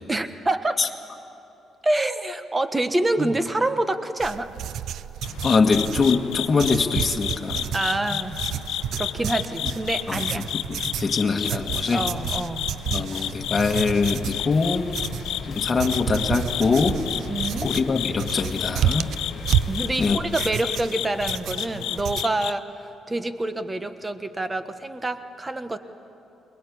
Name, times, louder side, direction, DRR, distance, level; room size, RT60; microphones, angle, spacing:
voice 1, 0.1-0.8 1.8-4.5 7.7-8.4 9.0-10.5 11.0-11.2 11.9-12.7 17.3-17.7 19.7-22.6 23.1-25.8, right 2 dB, 20° right, 9 dB, 1.3 m, -26 dB
sound 1, 4.2-22.2, right 10 dB, 75° right, 0.4 m, -31 dB
sound 2, 5.2-22.5, left 11 dB, 85° left, 0.6 m, -32 dB
voice 2, 5.4-7.7 10.1-10.4 10.7-12.1 12.9-14.9 15.4-17.0 17.6-19.1 20.0-20.2, left 4 dB, 30° left, 3 dB, 1.7 m, -23 dB
sound 3, 13.6-20.2, left 6 dB, 60° left, 1.7 m, -38 dB
22.0 x 21.0 x 8.6 m, 2.9 s
cardioid pair, 90°, 0 cm